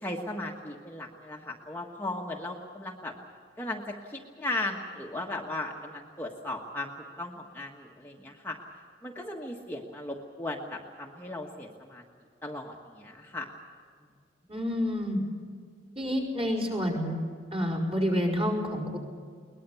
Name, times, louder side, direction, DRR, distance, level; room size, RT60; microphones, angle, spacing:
voice 1, 0.0-3.1 3.6-6.9 7.2-8.6 9.0-12.0 12.4-13.5, left 2 dB, 10° left, 0 dB, 1.4 m, -37 dB
voice 2, 14.5-15.2 16.0-17.2 17.5-19.0, equal, 30° right, 0 dB, 5.3 m, -28 dB
22.5 x 20.5 x 7.0 m, 2.1 s
head